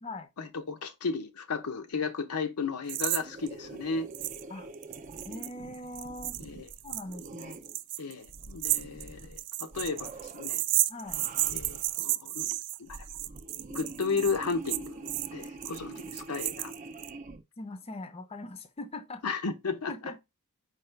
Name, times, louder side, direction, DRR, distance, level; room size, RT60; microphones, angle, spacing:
voice 1, 0.4-4.1 6.4-6.7 8.0-10.6 11.5-13.0 13.7-16.7 19.2-19.9, left 4 dB, 85° left, 0.7 m, -34 dB
sound 1, 2.9-3.2 3.5-3.6 4.1-4.4 4.7-17.1, right 16 dB, 90° right, 0.3 m, -32 dB
sound 2, 3.2-7.8 8.3-9.4 9.7-10.5 11.0-12.0 12.7-17.4, right 2 dB, 35° right, 0.5 m, -45 dB
voice 2, 5.3-6.4 6.8-7.6 10.9-11.2 15.9-16.0 17.6-19.2 19.9-20.2, left 2 dB, 25° left, 0.5 m, -41 dB
4.8 x 2.4 x 4.4 m
head